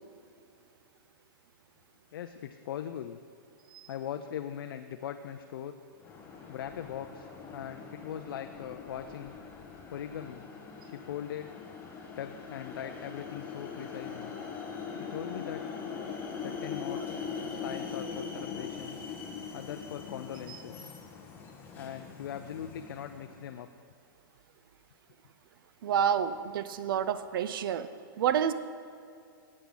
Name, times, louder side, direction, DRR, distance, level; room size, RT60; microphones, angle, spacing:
voice 1, 2.1-3.2 3.9-5.8 6.5-9.3 9.9-10.4 10.8-11.5 12.2-14.4 14.9-15.6 16.4-19.0 19.5-21.0 21.8-23.7, left 9 dB, 70° left, 7 dB, 0.5 m, -40 dB
sound 1, 6.0-23.5, left 6 dB, 15° left, 1.1 m, -42 dB
voice 2, 25.8-27.9 28.2-28.5, right 9 dB, 70° right, 13 dB, 0.6 m, -28 dB
13.0 x 8.6 x 3.8 m, 2.4 s
hypercardioid pair, 155°, 12 cm